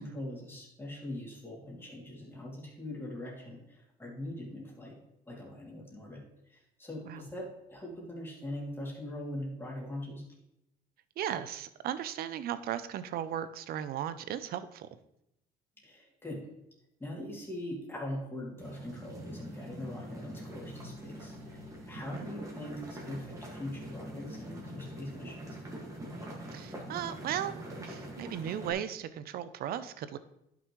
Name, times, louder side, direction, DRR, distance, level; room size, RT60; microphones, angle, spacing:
voice 1, 0.0-5.0 5.3-10.2 15.8-16.5 17.0-21.6 21.9-25.6, left 1 dB, 15° left, -3 dB, 2.6 m, -42 dB
voice 2, 11.2-14.9 22.1-22.3 26.5-27.5 27.8-30.2, right 10 dB, 65° right, 14 dB, 0.6 m, -36 dB
sound 1, 18.6-28.7, right 1 dB, 20° right, 1.9 m, -44 dB
11.0 x 6.0 x 3.1 m, 0.83 s
cardioid pair, 110°, 17 cm